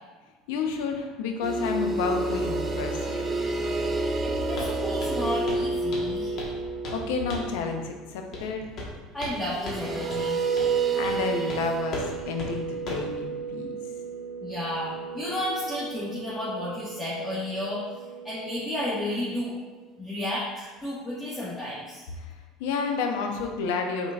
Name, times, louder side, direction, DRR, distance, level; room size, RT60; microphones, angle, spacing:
voice 1, 0.5-3.2 6.9-8.7 10.9-13.8 22.2-22.3 22.6-24.1, left 5 dB, 80° left, 4 dB, 0.6 m, -30 dB
sound 1, 1.4-8.1 9.5-19.8, right 3 dB, 25° right, 0.6 m, -31 dB
voice 2, 4.2-6.4 9.1-10.4 14.4-17.8 18.2-19.5 20.0-22.1, left 1 dB, 10° left, -9 dB, 1.5 m, -32 dB
Walk footsteps, 4.6-4.7 5.0-5.2 5.5-5.7 5.9-6.6 6.8-7.0 7.3-7.6 8.3-8.5 8.8-9.4 9.7-9.8 10.1-10.2 10.6-10.7 11.0-11.2 11.5-11.6 11.9-12.1 12.4-12.5 12.9-13.1, left 2 dB, 50° left, 1.2 m, -36 dB
5.2 x 3.9 x 2.4 m, 1.3 s
supercardioid pair, 85°, 0 cm